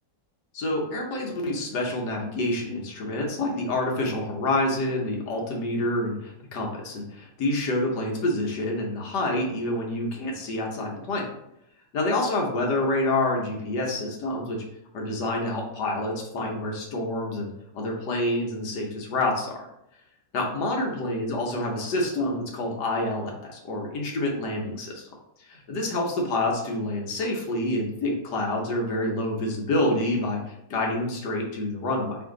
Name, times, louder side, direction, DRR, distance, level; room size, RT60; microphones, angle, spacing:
voice 1, 0.5-11.3 11.9-14.6 14.9-19.7 20.3-25.0 25.4-32.2, left 1 dB, 70° left, -1 dB, 1.4 m, -27 dB
4.7 x 2.6 x 3.6 m, 0.82 s
omnidirectional pair, 1.9 m